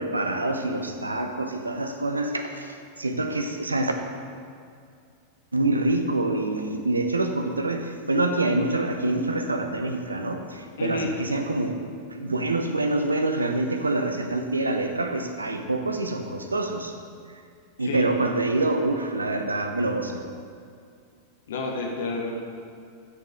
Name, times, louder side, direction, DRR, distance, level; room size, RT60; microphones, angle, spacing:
voice 1, 0.0-4.0 5.5-11.8 12.1-16.9 17.8-20.2, right 2 dB, 80° right, 6 dB, 0.7 m, -26 dB
voice 2, 10.8-11.1 17.8-18.0 21.5-22.4, left 3 dB, 60° left, 1 dB, 1.4 m, -30 dB
14.0 x 5.3 x 3.6 m, 2.3 s
figure-of-eight pair, 90°, 0 cm